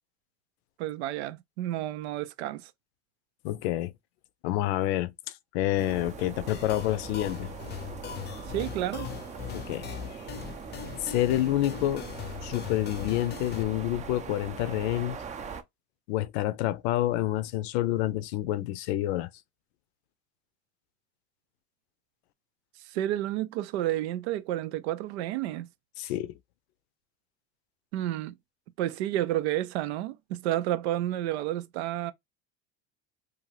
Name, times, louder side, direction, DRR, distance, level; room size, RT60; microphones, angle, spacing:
voice 1, 0.8-2.7 8.5-9.1 22.9-25.7 27.9-28.3 28.8-32.1, right 13 dB, 90° right, 0.5 m, -30 dB
voice 2, 3.4-3.9 4.4-5.1 5.5-7.5 9.5-9.9 11.0-12.1 12.4-15.2 16.1-19.3 26.0-26.3, left 14 dB, 80° left, 0.5 m, -28 dB
sound 1, 5.8-15.6, right 5 dB, 25° right, 0.5 m, -41 dB
sound 2, 6.5-13.6, left 9 dB, 30° left, 0.5 m, -40 dB
2.7 x 2.4 x 3.1 m
supercardioid pair, 110°, 32 cm